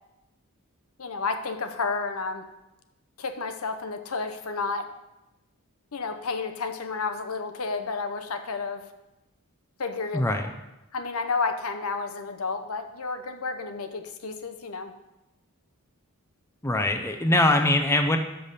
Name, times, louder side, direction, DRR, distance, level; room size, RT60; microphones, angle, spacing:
voice 1, 1.0-2.5 3.2-4.9 5.9-8.8 9.8-10.5 10.9-14.9, left 4 dB, 70° left, 7 dB, 0.8 m, -31 dB
voice 2, 10.1-10.5 16.6-18.2, left 1 dB, 10° left, 5 dB, 0.5 m, -22 dB
6.9 x 5.6 x 6.5 m, 0.94 s
head